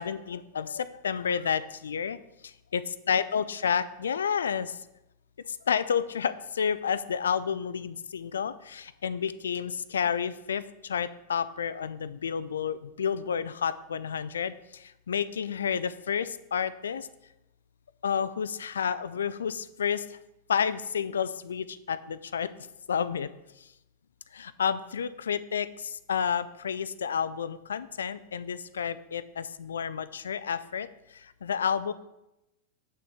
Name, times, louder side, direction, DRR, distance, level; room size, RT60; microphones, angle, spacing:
voice 1, 0.0-2.2 2.7-4.7 5.7-14.5 15.1-17.1 18.0-20.0 20.5-22.5 22.9-23.3 24.3-30.9 31.4-31.9, left 7 dB, 65° left, 15 dB, 0.3 m, -30 dB
8.0 x 5.8 x 3.6 m, 0.93 s
figure-of-eight pair, 90°, 0 cm